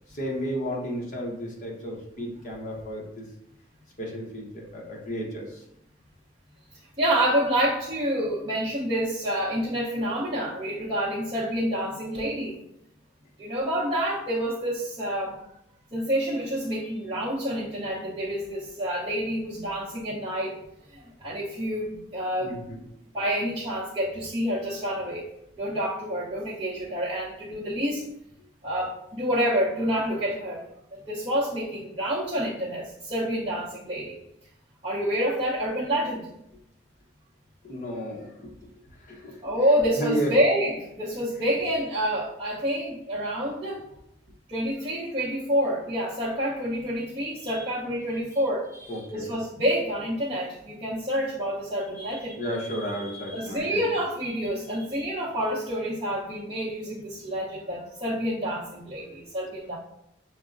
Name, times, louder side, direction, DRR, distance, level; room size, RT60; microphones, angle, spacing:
voice 1, 0.1-3.3 4.0-5.6 22.4-22.8 37.6-38.5 39.1-39.4 40.0-40.3 47.4-47.6 48.9-49.3 52.0-53.9 55.0-55.1, equal, 45° left, -2 dB, 0.8 m, -33 dB
voice 2, 7.0-12.6 13.4-15.4 15.9-20.6 21.2-22.6 23.1-25.3 25.6-28.1 28.6-30.6 30.9-34.2 34.8-36.3 39.4-43.8 44.5-48.7 49.1-52.4 53.3-59.8, equal, 25° right, -11 dB, 0.7 m, -28 dB
5.9 x 2.1 x 2.5 m, 0.80 s
head